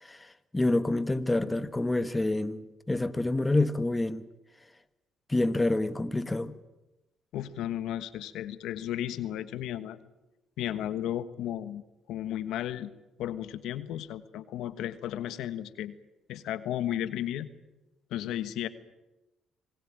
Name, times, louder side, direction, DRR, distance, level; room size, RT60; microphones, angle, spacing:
voice 1, 0.0-4.3 5.3-6.5, left 2 dB, 15° left, 1.5 m, -28 dB
voice 2, 7.3-10.0 10.6-11.8 12.1-12.9 13.2-15.9 16.3-17.5 18.1-18.7, left 11 dB, 85° left, 1.3 m, -34 dB
26.5 x 20.5 x 8.9 m
cardioid pair, 80°, 0 cm